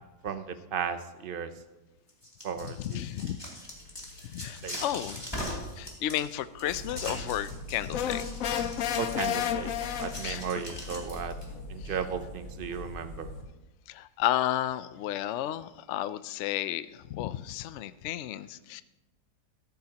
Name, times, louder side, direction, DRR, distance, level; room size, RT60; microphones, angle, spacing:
voice 1, 0.2-1.5 2.4-3.0 4.6-4.8 9.0-9.7 10.0-11.4 11.7-13.3, right 7 dB, 55° right, 10 dB, 0.6 m, -35 dB
sound 1, 2.1-11.4, equal, 15° left, 2.6 m, -41 dB
voice 2, 2.6-3.4 4.3-8.3 8.6-8.7 10.2-10.4 11.8-11.9 13.9-18.8, left 12 dB, 85° left, 14 dB, 0.6 m, -33 dB
sound 2, 3.6-13.4, left 1 dB, 30° left, 1.4 m, -44 dB
sound 3, 7.9-10.6, left 10 dB, 65° left, 0.9 m, -31 dB
14.5 x 13.5 x 2.9 m, 1.0 s
omnidirectional pair, 1.8 m